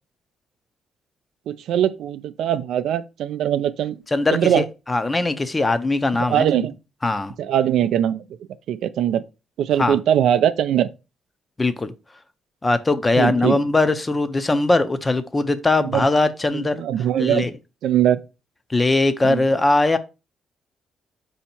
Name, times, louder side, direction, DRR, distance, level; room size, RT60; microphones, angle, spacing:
voice 1, 1.5-4.0 4.3-4.7 6.3-6.7 7.4-8.2 8.7-9.2 9.6-10.9 13.2-13.6 15.8-16.1 16.5-17.5 17.8-18.2 19.2-19.5, right 10 dB, 75° right, 0.3 m, -21 dB
voice 2, 4.1-6.5 7.0-7.3 9.8-10.0 11.6-11.9 12.6-16.8 17.2-17.5 18.7-20.0, left 2 dB, 20° left, 0.5 m, -20 dB
4.3 x 2.8 x 4.2 m
cardioid pair, 90°, 0 cm